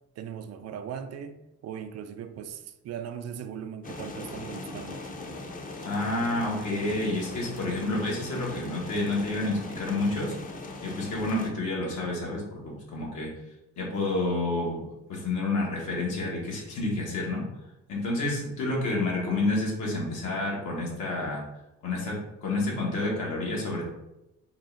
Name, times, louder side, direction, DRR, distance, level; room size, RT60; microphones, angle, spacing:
voice 1, 0.2-5.0, right 8 dB, 55° right, 0.4 m, -39 dB
sound 1, 3.8-11.5, left 2 dB, 30° left, 0.6 m, -39 dB
voice 2, 5.8-10.3 10.8-13.3 13.8-17.4 17.9-21.4 21.8-23.8, left 2 dB, 80° left, 1.4 m, -29 dB
3.8 x 2.4 x 3.8 m
cardioid pair, 90°, 30 cm